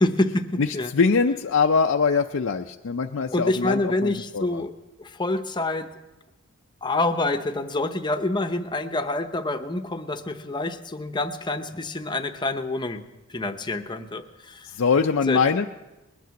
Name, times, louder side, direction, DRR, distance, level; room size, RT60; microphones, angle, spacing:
voice 1, 0.0-0.9 3.3-4.7 5.0-5.9 6.8-13.0 13.3-14.7 15.3-15.4, left 2 dB, 20° left, 7 dB, 0.8 m, -27 dB
voice 2, 0.9-4.6 14.6-15.6, left 5 dB, 60° left, 3 dB, 0.5 m, -22 dB
20.5 x 9.3 x 7.0 m, 1.1 s
head